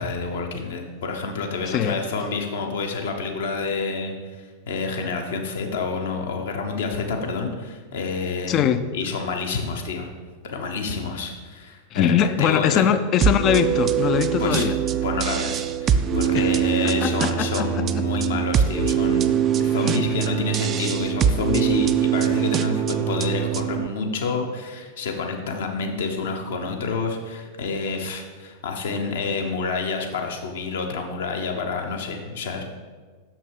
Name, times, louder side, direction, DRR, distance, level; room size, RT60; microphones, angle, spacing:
voice 1, 0.0-4.1 4.7-8.6 8.9-10.1 10.4-12.9 14.4-14.7 15.0-32.6, left 4 dB, 60° left, 3 dB, 1.0 m, -28 dB
voice 2, 1.7-2.0 8.5-8.8 11.9-14.8 16.3-16.5 17.0-17.7 18.0-18.1 19.8-19.9, left 9 dB, 35° left, 11 dB, 0.4 m, -22 dB
sound 1, 13.2-23.9, right 9 dB, 30° right, 0.4 m, -23 dB
6.9 x 6.0 x 4.8 m, 1.4 s
figure-of-eight pair, 90°, 0 cm